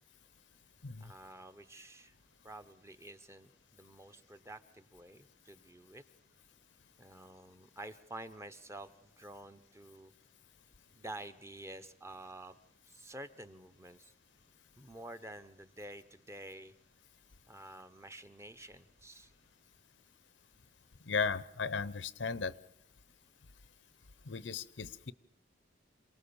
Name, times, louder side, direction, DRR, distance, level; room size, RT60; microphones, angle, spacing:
voice 1, 1.0-2.2 2.4-6.0 7.0-10.1 10.9-12.6 12.9-14.1 14.8-16.7 17.5-19.3, right 1 dB, 15° right, 9 dB, 0.9 m, -49 dB
voice 2, 21.1-22.5 24.3-25.1, left 5 dB, 80° left, 17 dB, 0.8 m, -36 dB
27.5 x 18.5 x 7.1 m, 0.82 s
head